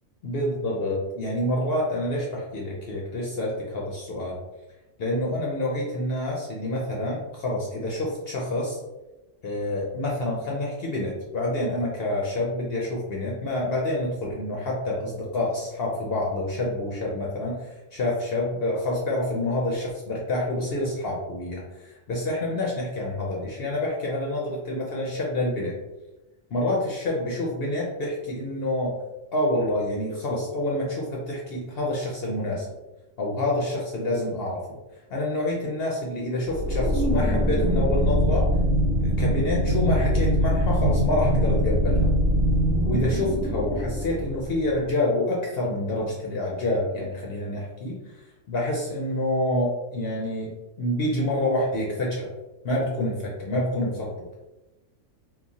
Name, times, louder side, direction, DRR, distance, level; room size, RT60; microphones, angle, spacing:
voice 1, 0.2-4.4 5.0-8.8 9.4-25.7 26.5-29.0 29.3-32.7 33.2-34.6 35.1-38.5 39.0-42.1 42.8-48.2 48.5-50.5 50.8-52.3 52.6-54.1, left 1 dB, 60° left, -3 dB, 0.7 m, -27 dB
sound 1, 36.5-44.7, equal, 80° right, 1.0 m, -23 dB
3.0 x 2.1 x 2.6 m, 1.0 s
omnidirectional pair, 1.3 m